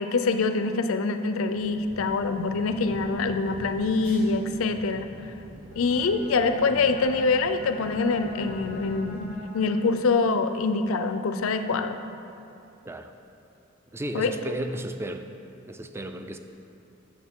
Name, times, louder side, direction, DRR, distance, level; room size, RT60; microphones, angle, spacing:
voice 1, 0.0-5.1 5.7-12.0 14.1-14.3, left 4 dB, 80° left, 8 dB, 0.5 m, -25 dB
sound 1, 1.5-9.3, equal, 75° right, 1.8 m, -45 dB
Bowed string instrument, 5.6-10.1, equal, 30° right, 1.4 m, -43 dB
voice 2, 13.9-15.3 15.7-16.4, right 1 dB, 10° right, 7 dB, 0.3 m, -34 dB
8.6 x 6.6 x 3.6 m, 2.7 s
head